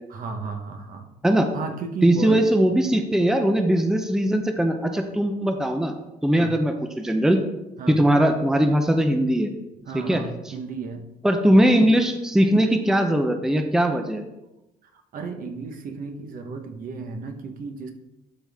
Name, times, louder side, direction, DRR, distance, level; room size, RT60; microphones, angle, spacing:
voice 1, 0.1-1.1 1.5-2.4 6.3-6.5 7.8-8.0 9.8-11.0 14.8-17.9, right 4 dB, 55° right, 4 dB, 1.1 m, -34 dB
voice 2, 2.0-5.9 6.2-7.4 7.9-9.5 9.9-10.2 11.2-14.2, right 1 dB, 5° right, 5 dB, 0.6 m, -20 dB
12.0 x 4.1 x 3.5 m, 0.94 s
cardioid pair, 110°, 17 cm